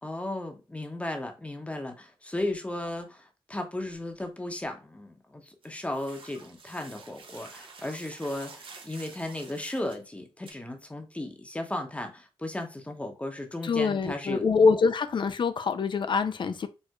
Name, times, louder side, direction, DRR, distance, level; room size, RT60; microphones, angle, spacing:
voice 1, 0.0-14.4, left 1 dB, 15° left, 0.9 m, -35 dB
sound 1, 5.6-10.0 10.5-10.6, right 4 dB, 60° right, 0.7 m, -49 dB
voice 2, 13.6-16.7, left 5 dB, 55° left, 0.4 m, -24 dB
4.5 x 2.1 x 2.3 m
cardioid pair, 50°, 10 cm